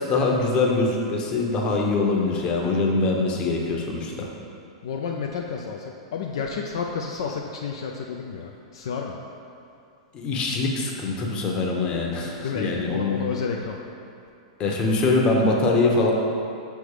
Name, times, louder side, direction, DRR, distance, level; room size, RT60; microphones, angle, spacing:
voice 1, 0.0-4.3 10.1-13.2 14.6-16.1, left 3 dB, 35° left, 0 dB, 1.0 m, -23 dB
voice 2, 4.8-5.8 6.1-9.2 12.4-13.8, left 5 dB, 65° left, 1 dB, 0.4 m, -30 dB
6.3 x 3.5 x 4.9 m, 2.6 s
hypercardioid pair, 105°, 3 cm